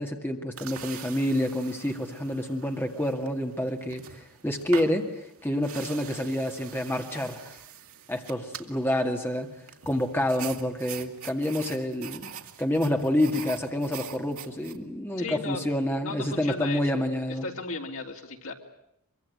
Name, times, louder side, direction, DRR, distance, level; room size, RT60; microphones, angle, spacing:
voice 1, 0.0-7.6 8.1-9.5 9.9-12.3 12.6-17.5, left 1 dB, 10° left, 3 dB, 2.1 m, -28 dB
sound 1, 0.6-14.8, right 8 dB, 75° right, 2.1 m, -44 dB
voice 2, 15.2-15.6 16.0-17.0 17.4-18.5, left 3 dB, 70° left, 2 dB, 3.3 m, -35 dB
24.0 x 24.0 x 9.3 m, 0.78 s
head